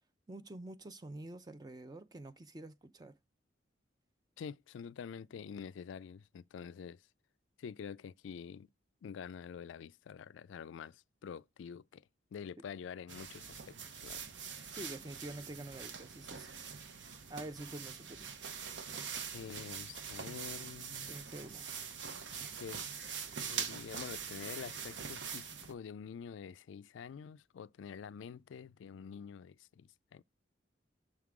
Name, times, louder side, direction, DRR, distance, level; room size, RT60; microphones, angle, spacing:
voice 1, 0.3-3.1 14.7-16.5 17.3-18.3 21.0-21.7, right 1 dB, 20° right, 0.4 m, -47 dB
voice 2, 4.4-7.0 7.6-8.7 9.0-12.0 12.3-14.2 19.3-21.1 22.6-30.2, left 7 dB, 80° left, 0.3 m, -47 dB
sound 1, 13.1-25.7, right 6 dB, 75° right, 0.9 m, -44 dB
6.5 x 3.7 x 4.7 m
head